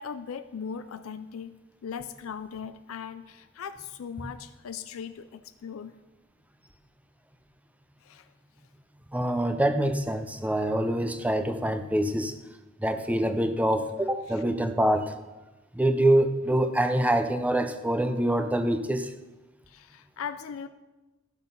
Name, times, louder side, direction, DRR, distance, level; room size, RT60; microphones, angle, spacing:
voice 1, 0.0-6.0 8.0-8.3 14.3-14.4 19.7-20.7, left 6 dB, 85° left, 10 dB, 0.4 m, -39 dB
voice 2, 9.1-12.3 12.8-15.1 15.8-19.1, right 1 dB, 5° right, 9 dB, 0.6 m, -25 dB
12.5 x 6.0 x 5.4 m, 1.1 s
head